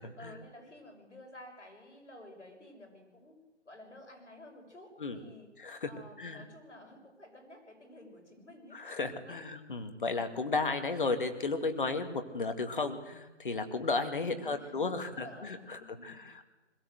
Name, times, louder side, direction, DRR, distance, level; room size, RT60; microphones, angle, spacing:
voice 1, 0.1-3.4 3.6-5.5 5.9-8.8 9.1-9.5 14.3-16.2, left 1 dB, 75° left, 2 dB, 6.7 m, -52 dB
voice 2, 5.6-5.9 6.2-6.4 8.7-16.5, left 3 dB, 45° left, 8 dB, 2.0 m, -34 dB
21.5 x 15.5 x 7.9 m, 1.1 s
figure-of-eight pair, 165°, 36 cm